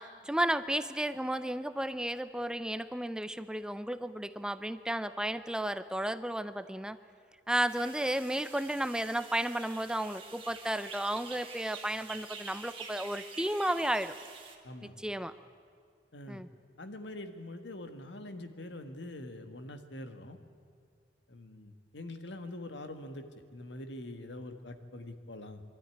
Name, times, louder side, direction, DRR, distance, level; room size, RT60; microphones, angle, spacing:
voice 1, 0.0-7.0 7.5-14.1 15.0-15.3 16.3-16.5, right 1 dB, 5° right, 12 dB, 0.5 m, -33 dB
sound 1, 7.7-14.6, right 5 dB, 30° right, 2.1 m, -47 dB
voice 2, 16.1-16.4 16.8-20.4 21.3-23.2 23.5-25.6, left 1 dB, 80° left, 7 dB, 1.6 m, -44 dB
23.5 x 13.0 x 9.8 m, 2.1 s
head